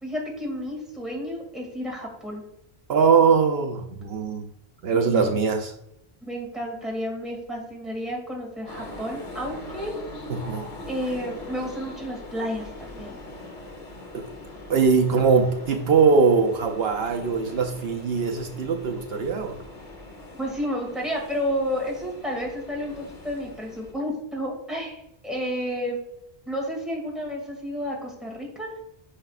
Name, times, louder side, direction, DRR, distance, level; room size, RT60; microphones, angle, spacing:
voice 1, 0.0-2.4 4.9-5.4 6.2-9.9 10.8-13.2 20.4-26.0 26.5-28.7, equal, ahead, -2 dB, 2.3 m, -31 dB
voice 2, 2.9-4.5 4.8-5.7 10.3-10.7 14.1-14.2 14.7-19.6, right 5 dB, 70° right, 4 dB, 0.9 m, -21 dB
sound 1, 8.7-23.9, left 2 dB, 35° left, 1.1 m, -41 dB
10.0 x 5.6 x 2.4 m, 0.81 s
omnidirectional pair, 1.1 m